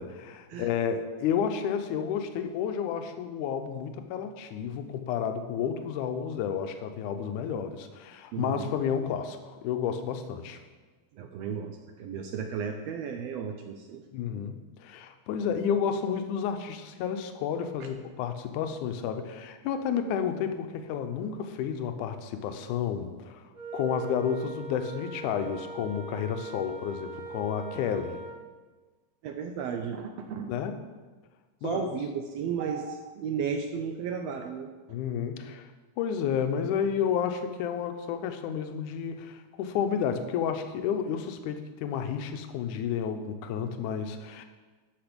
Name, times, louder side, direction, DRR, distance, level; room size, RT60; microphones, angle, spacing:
voice 1, 0.0-10.6 14.1-23.4 23.7-28.2 30.5-30.8 31.6-31.9 34.9-35.7 36.0-44.4, left 7 dB, 85° left, 7 dB, 2.2 m, -31 dB
voice 2, 8.3-8.7 11.2-14.0 17.8-17.9 29.2-30.5 31.6-34.7, right 7 dB, 85° right, 5 dB, 1.4 m, -34 dB
Wind instrument woodwind instrument, 23.5-28.4, right 4 dB, 70° right, 0.7 m, -41 dB
12.0 x 6.0 x 5.2 m, 1.3 s
omnidirectional pair, 3.6 m